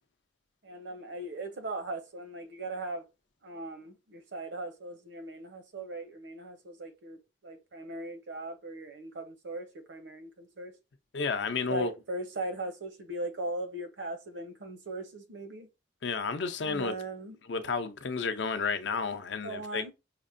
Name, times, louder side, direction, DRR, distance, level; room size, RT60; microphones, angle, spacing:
voice 1, 0.6-3.0 3.4-10.7 11.7-15.7 16.6-17.4 19.4-19.9, right 2 dB, 70° right, 0.7 m, -39 dB
voice 2, 11.1-11.9 16.0-16.9 17.5-19.8, left 4 dB, 70° left, 0.5 m, -31 dB
5.8 x 2.1 x 2.5 m
head